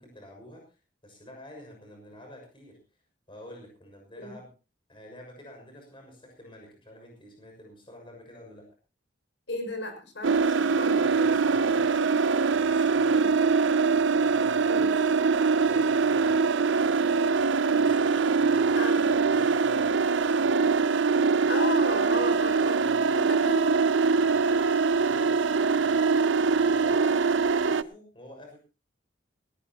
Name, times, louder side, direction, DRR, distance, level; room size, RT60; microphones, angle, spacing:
voice 1, 0.0-2.8 3.3-4.5 4.9-8.7 11.0-12.1 12.6-13.3 14.2-15.1 15.6-16.4 17.7-20.7 21.4-21.5 22.7-23.5 24.1-28.6, left 1 dB, 30° left, 2 dB, 6.5 m, -48 dB
voice 2, 9.5-11.0 13.1-13.3 14.7-14.9 18.7-19.0 21.5-23.7, left 1 dB, 75° left, 5 dB, 6.2 m, -34 dB
sound 1, 10.2-27.8, right 4 dB, 90° right, 0.7 m, -23 dB
19.5 x 18.5 x 3.0 m, 0.33 s
head